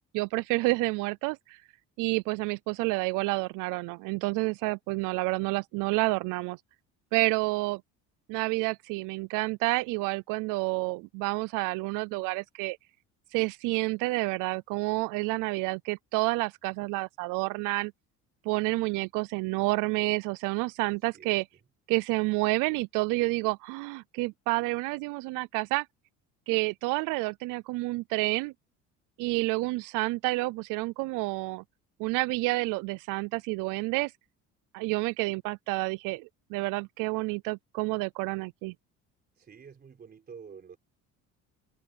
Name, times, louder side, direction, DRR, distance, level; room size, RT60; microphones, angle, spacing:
voice 1, 0.1-1.6 2.0-6.6 7.1-7.8 8.3-12.8 13.3-17.9 18.5-21.4 21.9-25.9 26.5-28.5 29.2-31.6 32.0-34.1 34.7-38.7, right 24 dB, 80° right, 0.6 m, -29 dB
voice 2, 20.8-21.4 39.4-40.8, right 6 dB, 30° right, 4.0 m, -49 dB
cardioid pair, 125°, 32 cm